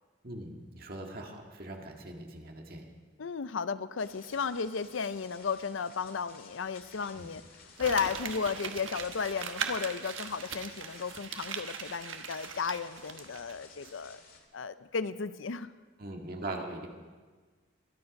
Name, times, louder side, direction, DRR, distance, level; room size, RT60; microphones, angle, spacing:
voice 1, 0.2-2.9 7.2-7.3 16.0-16.9, right 2 dB, 45° right, 2 dB, 1.8 m, -41 dB
voice 2, 3.2-7.4 7.8-14.2 14.5-15.7, left 5 dB, 75° left, 14 dB, 0.5 m, -34 dB
sound 1, 4.0-14.4, left 4 dB, 45° left, 2.0 m, -55 dB
Crumpling crinkling, 7.8-13.5 13.8-13.9, right 6 dB, 75° right, 1.2 m, -40 dB
23.5 x 9.7 x 5.3 m, 1.4 s
head